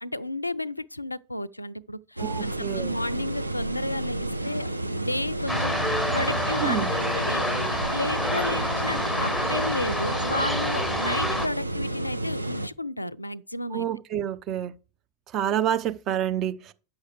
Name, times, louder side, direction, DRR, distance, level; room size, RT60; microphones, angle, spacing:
voice 1, 0.0-4.7 4.9-5.8 6.1-13.9, left 1 dB, 85° left, 0.4 m, -32 dB
voice 2, 2.2-3.0 6.6-6.9 13.7-14.7 15.3-16.7, right 10 dB, 35° right, 0.7 m, -28 dB
sound 1, 2.2-12.7, right 1 dB, 85° right, 0.5 m, -31 dB
sound 2, 5.5-11.5, left 1 dB, ahead, 0.8 m, -28 dB
9.4 x 6.4 x 4.8 m
figure-of-eight pair, 90°, 0 cm